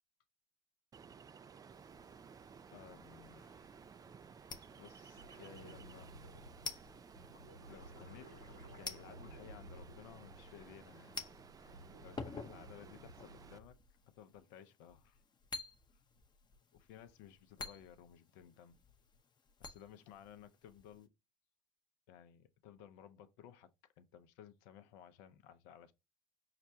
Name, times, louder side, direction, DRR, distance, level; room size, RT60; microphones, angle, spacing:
Ocean, 0.9-13.6, right 6 dB, 20° right, 0.3 m, -57 dB
sound 1, 1.7-21.1, left 4 dB, 25° left, 0.7 m, -52 dB
voice 1, 2.7-3.8 4.8-6.1 7.7-8.3 8.8-11.2 11.6-13.8 14.1-15.2 15.9-16.0 16.7-18.8 19.6-21.1 22.1-23.7 24.0-25.9, left 9 dB, 65° left, 0.6 m, -57 dB
sound 2, 5.1-10.9 11.2-13.8 16.2-16.3, right 1 dB, 90° right, 2.4 m, -56 dB
5.8 x 2.2 x 2.7 m
hypercardioid pair, 65°, 17 cm